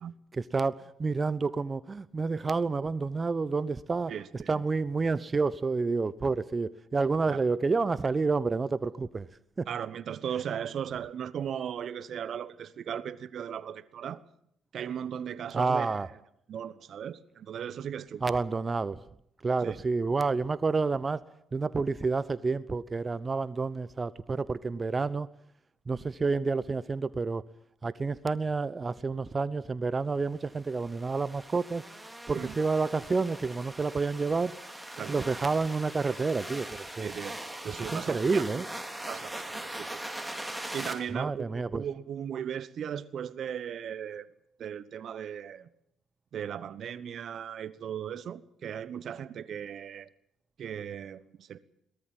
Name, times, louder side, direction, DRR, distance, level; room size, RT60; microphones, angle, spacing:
voice 1, 0.3-9.3 9.6-9.7 15.5-16.1 18.2-19.0 19.4-21.2 21.5-25.3 25.9-27.4 27.8-31.8 32.3-34.5 35.1-37.1 37.8-38.7 41.1-41.8, right 4 dB, 35° right, 0.9 m, -29 dB
voice 2, 4.1-4.6 7.3-7.4 9.7-14.2 14.7-16.0 16.5-18.2 19.6-19.8 32.3-32.5 35.0-35.3 37.0-37.4 37.6-38.6 39.1-40.0 40.7-44.3 44.6-45.7 46.3-50.1 50.6-51.6, right 8 dB, 60° right, 1.1 m, -37 dB
sound 1, 30.5-40.9, right 1 dB, 10° right, 4.8 m, -41 dB
22.5 x 18.5 x 7.5 m
hypercardioid pair, 50°, 0 cm